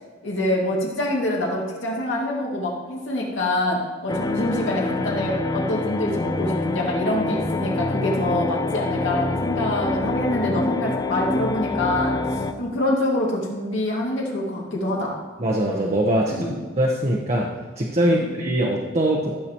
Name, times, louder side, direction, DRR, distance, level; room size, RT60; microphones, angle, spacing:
voice 1, 0.2-12.2 12.6-15.1 16.4-16.5 18.0-18.3, left 1 dB, 85° left, -2 dB, 2.1 m, -25 dB
sound 1, 4.1-12.5, left 2 dB, 20° left, 0.4 m, -26 dB
voice 2, 15.4-16.3 16.8-17.5 17.8-19.4, right 1 dB, 35° right, -1 dB, 0.9 m, -22 dB
14.0 x 6.8 x 3.0 m, 1.4 s
head